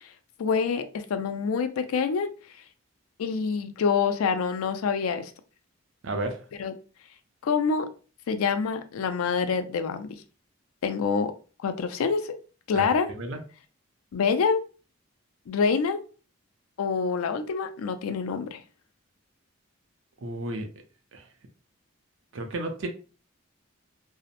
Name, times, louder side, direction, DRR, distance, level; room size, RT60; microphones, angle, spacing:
voice 1, 0.4-2.3 3.2-5.3 6.6-6.7 7.4-7.9 8.3-10.1 10.8-11.3 11.6-12.4 12.7-13.1 14.1-14.6 15.5-16.0 16.8-18.6, left 5 dB, 85° left, 9 dB, 0.4 m, -26 dB
voice 2, 6.0-6.4 12.7-13.4 20.2-20.7 21.1-21.2 22.3-22.9, right 2 dB, 65° right, 5 dB, 0.5 m, -32 dB
2.7 x 2.0 x 2.4 m, 0.36 s
head